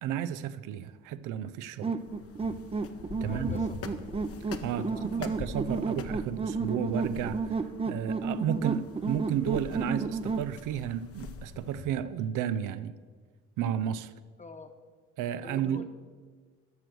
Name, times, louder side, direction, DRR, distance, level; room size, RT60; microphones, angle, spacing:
voice 1, 0.0-2.0 3.2-3.6 4.6-4.9 5.1-7.6 7.9-13.0 13.6-14.1 15.2-15.9, right 9 dB, 85° right, 0.5 m, -32 dB
sound 1, 1.8-10.5, right 4 dB, 20° right, 0.5 m, -32 dB
sound 2, 2.0-12.0, left 5 dB, 50° left, 0.8 m, -44 dB
voice 2, 3.2-3.8 4.7-5.2 14.4-14.7 15.4-15.9, left 3 dB, 25° left, 1.1 m, -45 dB
12.0 x 6.2 x 6.2 m
cardioid pair, 90°, 30 cm